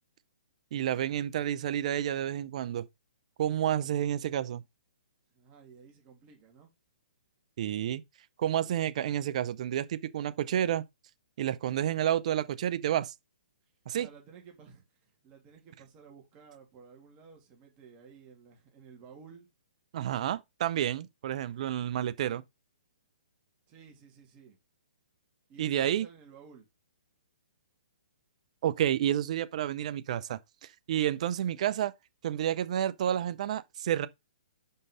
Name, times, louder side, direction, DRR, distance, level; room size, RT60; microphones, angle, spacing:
voice 1, 0.7-2.9 3.4-4.6 7.6-8.0 8.4-10.8 11.4-13.1 13.9-14.1 19.9-22.4 25.6-26.1 28.6-31.9 32.2-34.1, right 11 dB, 50° right, 0.6 m, -30 dB
voice 2, 5.3-6.7 13.9-19.5 23.7-24.6 25.5-26.7, right 6 dB, 30° right, 2.6 m, -54 dB
5.5 x 5.4 x 3.8 m
hypercardioid pair, 135°, 5 cm